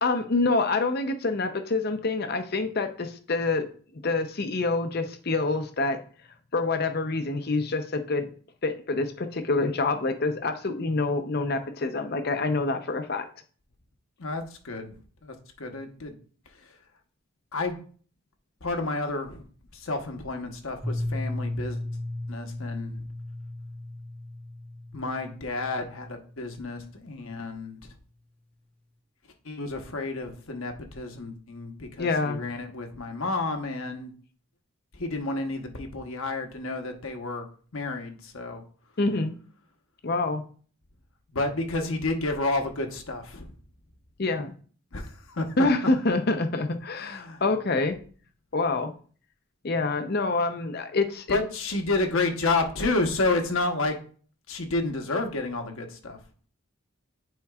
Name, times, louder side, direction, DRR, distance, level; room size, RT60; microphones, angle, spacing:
voice 1, 0.0-6.0 6.5-8.3 8.6-13.3 32.0-32.4 39.0-39.3 40.0-40.4 44.2-44.5 45.6-48.0 48.5-48.9 49.6-51.4, left 3 dB, 45° left, 8 dB, 0.7 m, -26 dB
voice 2, 14.2-15.0 15.2-16.1 17.5-17.8 18.6-19.4 19.7-21.8 22.3-23.0 24.9-27.8 29.4-34.1 34.9-37.4 37.7-38.6 41.3-43.5 44.9-45.5 47.0-47.4 51.3-54.0 54.5-56.2, left 2 dB, 75° left, 4 dB, 1.0 m, -30 dB
Piano, 20.8-26.5, left 1 dB, 5° left, 0.5 m, -35 dB
9.5 x 4.5 x 2.4 m, 0.43 s
head